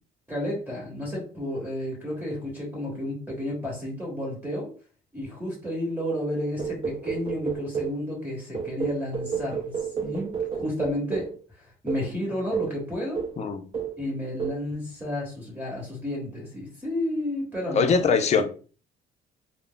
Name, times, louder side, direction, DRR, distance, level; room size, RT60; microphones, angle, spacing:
voice 1, 0.3-4.7 5.1-11.3 11.5-13.2 14.0-18.1, left 1 dB, 10° right, 1.3 m, -32 dB
sound 1, 6.6-8.0 8.5-11.4 11.9-12.1 12.5-12.8 13.2-13.5 13.7-14.0 14.4-14.7, right 7 dB, 30° right, 0.5 m, -31 dB
voice 2, 17.7-18.4, left 5 dB, 40° left, 0.5 m, -21 dB
2.2 x 2.0 x 3.8 m
cardioid pair, 110°, 17 cm